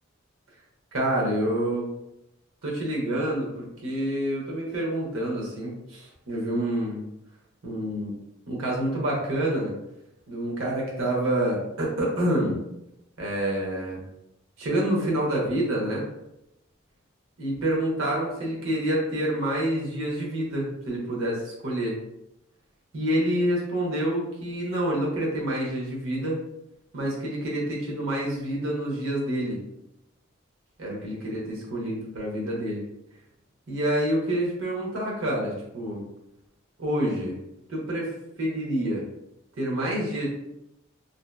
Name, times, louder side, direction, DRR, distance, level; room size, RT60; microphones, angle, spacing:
voice 1, 0.9-1.9 2.6-7.0 7.6-8.1 8.5-9.7 10.3-12.6 13.2-14.0 14.6-16.1 17.4-22.0 22.9-26.4 26.9-29.6 30.8-32.8 33.7-36.0 36.8-37.4 37.7-39.1 39.6-40.3, right 1 dB, 75° right, -3 dB, 0.8 m, -27 dB
2.7 x 2.2 x 2.2 m, 0.85 s
head